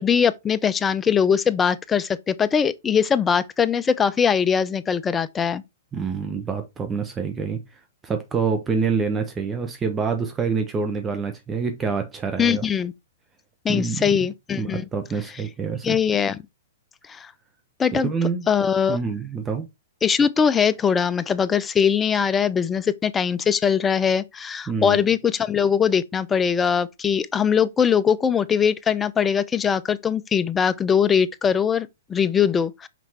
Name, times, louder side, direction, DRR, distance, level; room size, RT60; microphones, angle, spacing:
voice 1, 0.0-5.6 12.4-12.9 13.6-14.8 15.8-16.4 17.1-17.3 17.8-18.1 18.5-19.0 20.0-32.9, left 7 dB, 15° left, 0.6 m, -21 dB
voice 2, 5.9-7.6 8.0-12.6 13.7-14.0 14.6-16.0 17.9-18.5 18.9-19.7 24.7-25.0, right 5 dB, 20° right, 1.1 m, -26 dB
6.0 x 4.6 x 4.2 m
hypercardioid pair, 120°, 0 cm